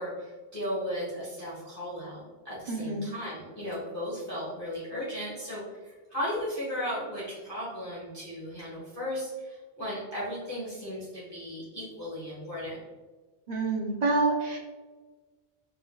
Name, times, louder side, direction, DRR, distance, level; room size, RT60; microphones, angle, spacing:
voice 1, 0.0-12.8, equal, 15° left, -9 dB, 1.1 m, -36 dB
voice 2, 2.7-3.1 13.5-14.6, right 3 dB, 45° right, -1 dB, 0.7 m, -27 dB
4.4 x 3.2 x 2.3 m, 1.3 s
omnidirectional pair, 1.1 m